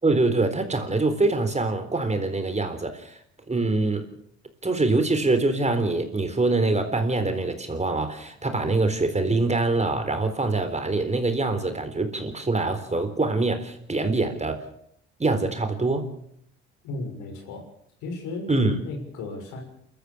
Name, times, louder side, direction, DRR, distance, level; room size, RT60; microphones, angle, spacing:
voice 1, 0.0-3.2 3.5-4.0 4.6-14.6 15.2-16.1 18.5-18.8, right 2 dB, 20° right, 8 dB, 4.0 m, -24 dB
voice 2, 16.8-17.7 18.0-18.5 18.9-19.6, left 3 dB, 70° left, 3 dB, 6.4 m, -35 dB
28.5 x 14.5 x 7.2 m, 0.71 s
hypercardioid pair, 60°, 31 cm